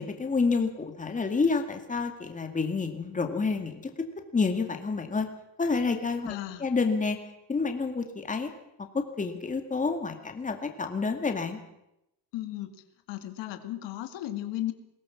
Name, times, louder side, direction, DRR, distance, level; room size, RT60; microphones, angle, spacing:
voice 1, 0.0-4.1 4.3-5.3 5.6-7.2 7.5-8.5 8.9-11.6, left 4 dB, 20° left, 5 dB, 2.3 m, -29 dB
voice 2, 6.3-6.7 12.3-12.7 13.1-14.7, left 14 dB, 80° left, 8 dB, 2.2 m, -35 dB
22.0 x 17.5 x 7.3 m, 0.84 s
cardioid pair, 135°, 42 cm